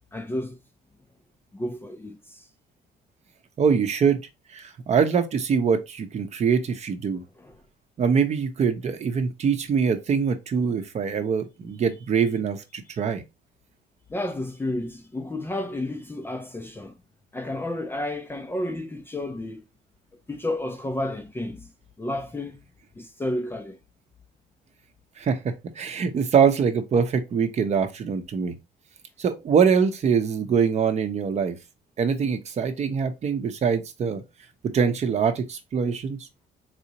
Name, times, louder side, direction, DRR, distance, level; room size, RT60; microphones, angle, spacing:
voice 1, 0.1-0.6 1.5-2.4 7.4-7.5 14.1-16.9 17.3-19.6 20.3-21.7 22.0-22.6 23.0-23.8, left 1 dB, 15° left, 0.5 m, -31 dB
voice 2, 3.6-4.2 4.5-7.2 8.0-13.2 25.2-25.4 25.8-28.5 29.2-31.6 32.0-34.2 34.7-36.2, right 6 dB, 40° right, 0.8 m, -23 dB
4.1 x 2.8 x 2.7 m
cardioid pair, 110°, 17 cm